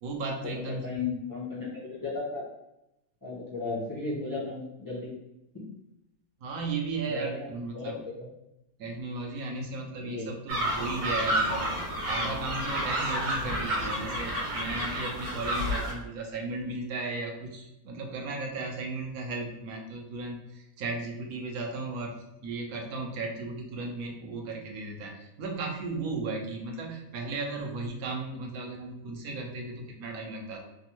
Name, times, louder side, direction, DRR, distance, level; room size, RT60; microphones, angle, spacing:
voice 1, 0.0-0.9 6.4-8.0 8.8-30.6, right 3 dB, 70° right, 2 dB, 1.0 m, -35 dB
voice 2, 0.8-2.4 3.2-5.1 5.5-5.7 7.1-7.5 7.7-8.3 10.0-10.3 13.4-13.5, left 3 dB, 25° left, -7 dB, 0.4 m, -35 dB
sound 1, 10.5-15.9, equal, 90° right, 1.5 m, -30 dB
3.4 x 2.1 x 2.9 m, 0.87 s
omnidirectional pair, 1.7 m